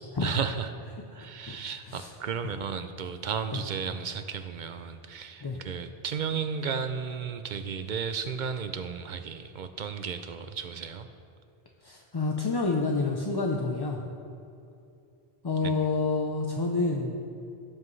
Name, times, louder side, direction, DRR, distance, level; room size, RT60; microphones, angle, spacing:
voice 1, 0.2-0.7 1.1-11.1 15.6-15.7, right 6 dB, 55° right, 9 dB, 0.6 m, -34 dB
voice 2, 1.2-2.1 3.5-3.6 5.4-5.6 11.8-14.0 15.4-17.2, left 3 dB, 30° left, 1 dB, 0.5 m, -29 dB
16.5 x 7.5 x 3.2 m, 2.6 s
omnidirectional pair, 1.0 m